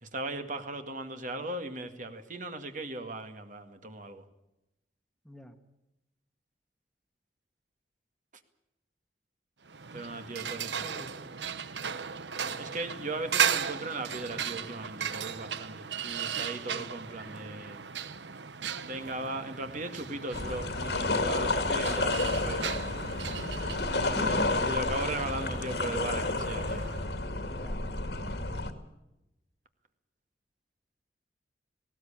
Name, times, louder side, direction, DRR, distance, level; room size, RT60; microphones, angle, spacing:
voice 1, 0.0-4.2 9.9-10.9 12.6-17.8 18.9-22.9 23.9-26.9, right 2 dB, 45° right, 7 dB, 2.0 m, -38 dB
sound 1, 9.7-27.1, right 7 dB, 85° right, 1.0 m, -36 dB
voice 2, 10.8-11.4 12.4-12.7 16.7-16.9 24.1-24.7 27.5-27.8, left 1 dB, 5° left, 6 dB, 1.5 m, -43 dB
sound 2, 20.3-28.7, left 2 dB, 70° left, 2.3 m, -30 dB
19.0 x 17.5 x 8.7 m, 0.91 s
head